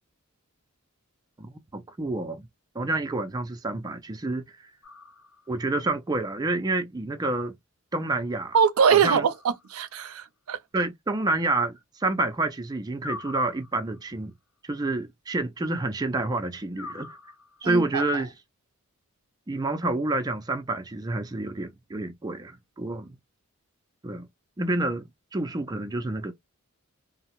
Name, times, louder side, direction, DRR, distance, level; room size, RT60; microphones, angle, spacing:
voice 1, 1.4-2.5 2.8-4.4 5.5-7.6 7.9-8.6 8.9-9.2 10.7-14.3 14.6-17.2 17.6-18.3 19.5-23.2 24.0-24.3 24.6-25.0 25.3-26.3, right 2 dB, 20° right, 0.3 m, -28 dB
sound 1, 4.8-5.7 8.8-9.8 13.0-14.1 16.7-17.7, left 4 dB, 70° left, 0.7 m, -43 dB
voice 2, 8.5-10.6 17.6-18.0, right 7 dB, 85° right, 0.4 m, -23 dB
2.7 x 2.0 x 2.8 m
head